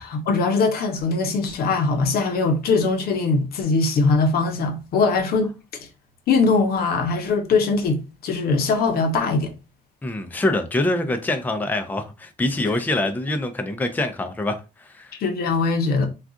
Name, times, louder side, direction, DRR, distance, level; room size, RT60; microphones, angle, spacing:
voice 1, 0.0-5.9 6.3-9.5 12.6-12.7 15.2-16.1, left 4 dB, 70° left, 0.7 m, -21 dB
voice 2, 10.0-15.1, left 2 dB, 10° left, 0.5 m, -25 dB
2.4 x 2.3 x 3.7 m
cardioid pair, 90°, 16 cm